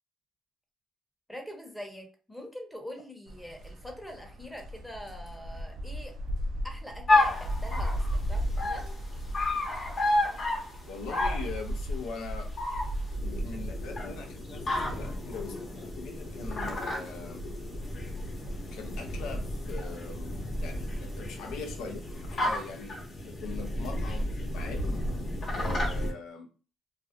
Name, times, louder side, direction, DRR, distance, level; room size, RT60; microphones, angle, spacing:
voice 1, 1.3-6.1 6.6-9.0, equal, 5° left, 1 dB, 0.7 m, -44 dB
sound 1, 3.3-22.4, equal, 70° right, 0.3 m, -37 dB
sound 2, 7.1-26.1, left 1 dB, 50° left, 0.8 m, -32 dB
voice 2, 10.9-12.5 13.2-17.5 18.7-25.0 25.5-26.5, left 4 dB, 90° left, 3 dB, 0.4 m, -42 dB
2.4 x 2.1 x 2.5 m, 0.35 s
cardioid pair, 90°, 0 cm